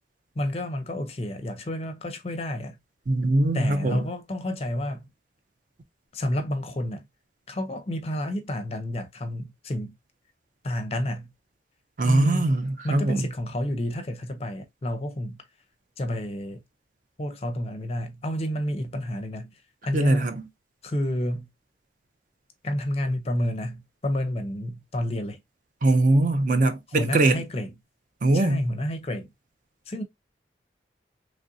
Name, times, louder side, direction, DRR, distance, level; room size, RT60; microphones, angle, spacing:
voice 1, 0.4-2.8 3.5-5.1 6.1-7.1 7.5-9.9 10.6-11.3 12.0-12.5 12.8-15.4 16.0-16.6 17.2-20.3 20.8-21.5 22.6-25.4 27.0-27.7 28.3-29.3 29.9-30.0, left 1 dB, 35° left, 0.5 m, -30 dB
voice 2, 3.1-4.0 12.0-13.2 19.9-20.4 25.8-27.4 28.2-28.6, right 2 dB, 45° right, 0.4 m, -22 dB
3.2 x 2.5 x 2.6 m
head